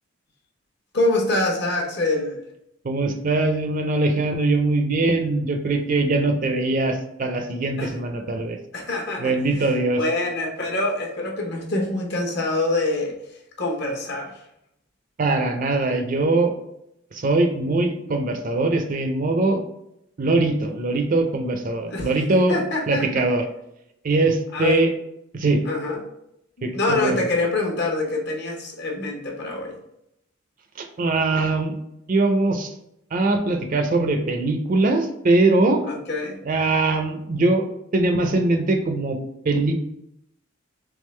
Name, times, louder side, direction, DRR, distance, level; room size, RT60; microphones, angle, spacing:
voice 1, 0.9-2.4 7.8-7.9 8.7-9.3 10.0-13.1 13.6-14.3 21.9-22.1 22.5-23.3 24.5-24.8 25.6-26.0 26.7-29.8 35.9-36.4, left 2 dB, 60° left, 0 dB, 0.9 m, -25 dB
voice 2, 2.8-8.6 9.2-10.0 15.2-16.5 17.1-19.6 20.2-22.6 22.9-23.4 24.0-24.9 25.3-25.6 26.6-27.1 30.8-31.8 32.1-32.7 33.1-35.8 36.5-37.6 37.9-39.2 39.4-39.7, right 2 dB, 45° right, 6 dB, 0.5 m, -21 dB
3.6 x 3.4 x 3.2 m, 0.80 s
head